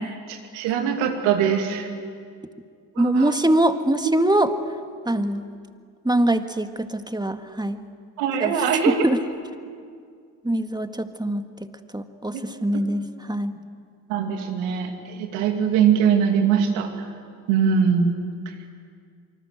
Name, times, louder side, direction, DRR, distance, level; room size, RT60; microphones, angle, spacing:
voice 1, 0.3-1.9 3.0-3.3 8.2-8.9 12.3-12.4 14.1-16.9 17.5-18.2, right 7 dB, 80° right, 4 dB, 2.6 m, -22 dB
voice 2, 3.0-4.5 5.1-5.4 6.0-7.8 8.4-9.2 10.4-11.5 11.9-13.5, right 1 dB, 10° right, 8 dB, 1.9 m, -23 dB
24.5 x 24.5 x 8.0 m, 2.1 s
hypercardioid pair, 45°, 46 cm